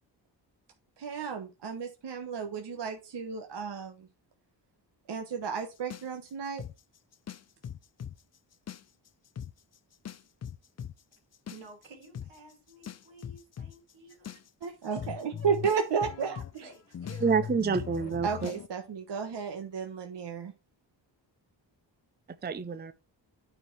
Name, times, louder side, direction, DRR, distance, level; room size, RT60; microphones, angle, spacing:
voice 1, 1.0-4.1 5.1-6.6 14.6-16.7 18.2-20.5, right 6 dB, 65° right, 1.3 m, -33 dB
sound 1, 5.9-8.2 8.5-9.1 9.4-9.5 10.1-18.7, left 8 dB, 35° left, 0.5 m, -40 dB
voice 2, 11.5-15.7 16.6-17.4, right 3 dB, 90° right, 3.1 m, -52 dB
voice 3, 17.2-18.5 22.4-22.9, right 5 dB, 20° right, 0.6 m, -28 dB
9.7 x 4.5 x 4.6 m
cardioid pair, 95°, 45 cm